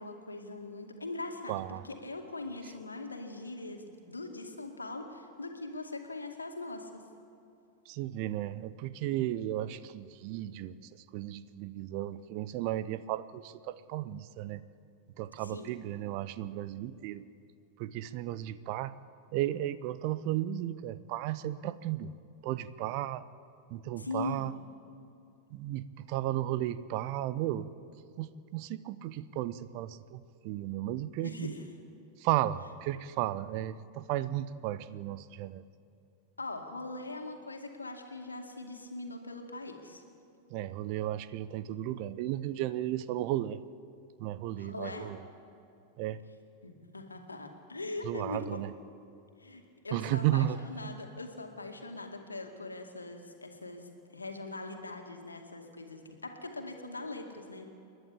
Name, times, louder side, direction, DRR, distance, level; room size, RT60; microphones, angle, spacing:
voice 1, 0.0-7.0 15.4-15.8 24.0-24.4 31.2-31.7 36.4-40.0 44.6-45.1 46.6-48.6 49.4-53.9 54.1-57.6, left 2 dB, 80° left, 4 dB, 2.3 m, -41 dB
voice 2, 1.5-1.8 7.9-10.7 11.1-14.6 15.2-17.3 17.8-18.9 19.3-22.1 22.4-23.2 23.7-24.5 25.5-27.7 28.2-31.5 32.2-35.6 40.5-43.6 44.2-45.2 46.0-46.2 48.0-48.7 49.9-50.6, right 13 dB, 45° right, 15 dB, 0.7 m, -34 dB
29.0 x 11.5 x 8.7 m, 2.7 s
figure-of-eight pair, 90°, 0 cm